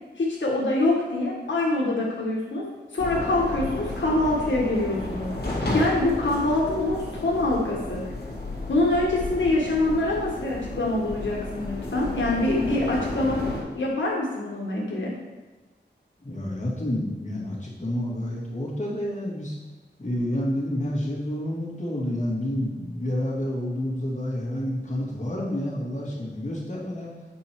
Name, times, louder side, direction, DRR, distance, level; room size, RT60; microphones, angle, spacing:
voice 1, 0.2-2.6 2.9-8.0 8.7-13.5 13.7-15.1, left 2 dB, 85° left, -4 dB, 1.4 m, -25 dB
sound 1, 3.0-13.6, left 2 dB, 55° left, 2.1 m, -32 dB
voice 2, 16.2-19.6 20.0-27.2, left 1 dB, 40° left, -6 dB, 2.6 m, -29 dB
8.6 x 5.5 x 4.7 m, 1.2 s
wide cardioid pair, 85°, 19 cm